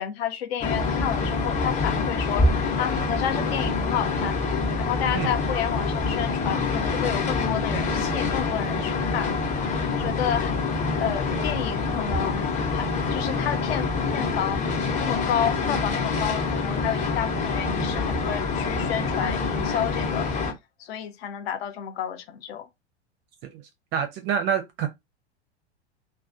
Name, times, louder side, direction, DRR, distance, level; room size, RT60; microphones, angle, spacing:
voice 1, 0.0-2.5 2.8-4.4 4.8-9.3 9.9-10.5 11.0-14.6 15.0-20.3 20.8-22.7, left 9 dB, 60° left, 0.7 m, -30 dB
sound 1, 0.6-20.5, left 4 dB, 20° left, 0.7 m, -26 dB
voice 2, 23.9-24.9, right 8 dB, 35° right, 0.4 m, -26 dB
2.3 x 2.2 x 2.5 m
hypercardioid pair, 95°, 34 cm